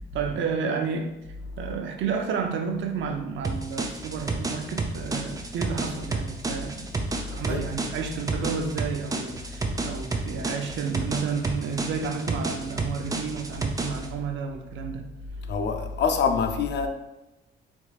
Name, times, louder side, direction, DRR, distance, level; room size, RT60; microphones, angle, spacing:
voice 1, 0.1-1.2 1.6-6.9 7.3-15.1, right 6 dB, 70° right, 4 dB, 0.6 m, -31 dB
sound 1, 3.4-14.1, right 3 dB, 20° right, 0.4 m, -31 dB
voice 2, 15.5-16.9, left 5 dB, 60° left, 6 dB, 0.5 m, -25 dB
4.4 x 2.9 x 2.4 m, 1.0 s
cardioid pair, 90°, 20 cm